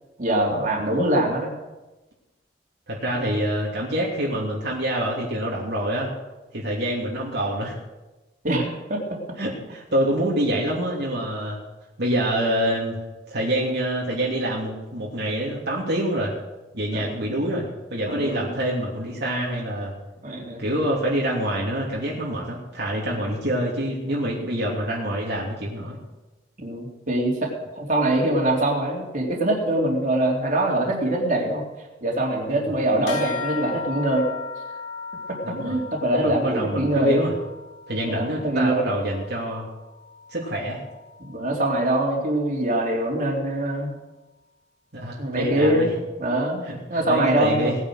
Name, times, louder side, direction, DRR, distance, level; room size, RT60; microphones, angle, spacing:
voice 1, 0.2-1.5 8.4-9.0 16.9-17.0 18.1-18.5 20.2-20.6 26.6-31.6 32.0-34.3 35.3-37.2 38.1-38.9 41.2-43.9 45.2-45.9 46.2-47.8, right 1 dB, 45° right, -1 dB, 3.5 m, -23 dB
voice 2, 2.9-6.1 6.5-7.8 9.4-11.6 12.0-16.3 16.7-19.9 20.6-26.0 32.5-32.7 35.4-35.8 36.2-37.3 37.9-39.7 40.3-40.8 44.9-45.9 46.7-47.7, right 1 dB, 60° right, -4 dB, 3.0 m, -26 dB
sound 1, 33.1-42.9, left 5 dB, 75° left, 2.9 m, -38 dB
19.0 x 9.8 x 6.5 m, 1.1 s
head